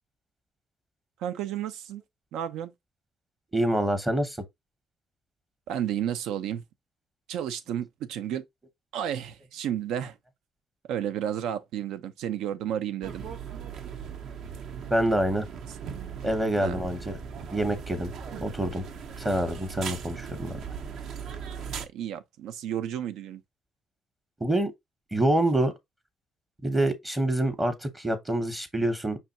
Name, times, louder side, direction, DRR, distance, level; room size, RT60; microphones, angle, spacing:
voice 1, 1.2-2.0 2.3-2.7 5.7-6.6 7.3-8.4 8.9-10.2 10.9-13.2 16.6-16.8 21.8-23.4, right 10 dB, 90° right, 0.8 m, -32 dB
voice 2, 3.5-4.4 14.9-15.5 16.2-17.2 17.5-18.1 18.4-18.8 19.2-20.6 24.4-24.7 25.1-25.7 26.6-29.2, right 1 dB, 10° right, 0.8 m, -26 dB
sound 1, 13.0-21.9, right 6 dB, 55° right, 0.7 m, -38 dB
5.7 x 3.3 x 2.8 m
cardioid pair, 175°, 0 cm